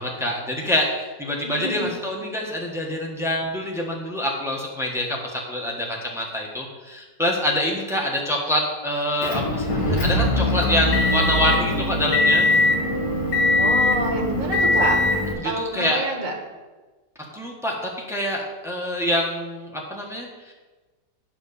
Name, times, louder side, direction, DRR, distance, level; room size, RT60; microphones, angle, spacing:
voice 1, 0.0-12.4 15.3-16.0 17.2-20.5, left 1 dB, ahead, -1 dB, 1.2 m, -26 dB
voice 2, 1.4-1.9 13.6-15.0 15.4-16.3, right 2 dB, 50° right, 1 dB, 2.0 m, -27 dB
Motor vehicle (road) / Engine, 9.2-15.3, left 2 dB, 55° left, 2.2 m, -21 dB
9.7 x 4.9 x 6.8 m, 1.3 s
omnidirectional pair, 1.9 m